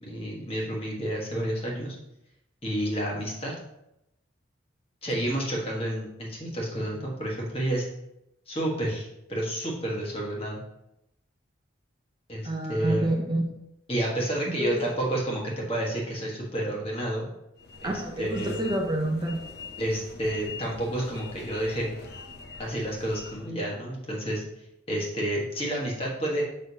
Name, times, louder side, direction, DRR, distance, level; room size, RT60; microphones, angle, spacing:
voice 1, 0.0-2.0 2.6-3.5 5.0-7.9 8.5-10.6 12.3-13.1 13.9-17.3 17.8-18.7 19.8-21.9 22.6-24.4 24.9-26.4, right 1 dB, 30° left, -3 dB, 1.4 m, -30 dB
voice 2, 12.4-13.4 14.5-14.8 17.8-19.4, right 1 dB, 20° right, 0 dB, 0.6 m, -28 dB
sound 1, 17.6-23.5, left 4 dB, 50° left, 0.6 m, -44 dB
6.5 x 5.5 x 2.8 m, 0.86 s
head